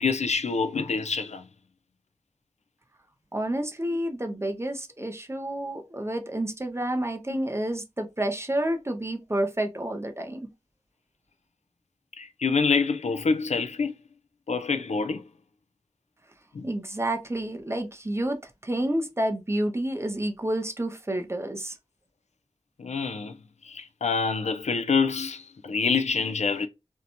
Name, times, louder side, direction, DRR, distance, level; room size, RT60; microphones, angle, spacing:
voice 1, 0.0-1.4 12.2-14.0 14.5-15.2 16.5-16.6 22.8-23.4 23.6-26.7, left 5 dB, 65° left, 0.4 m, -26 dB
voice 2, 3.3-10.4 16.6-21.8, right 1 dB, 20° right, 0.4 m, -29 dB
2.6 x 2.1 x 2.7 m
wide cardioid pair, 60°, 12 cm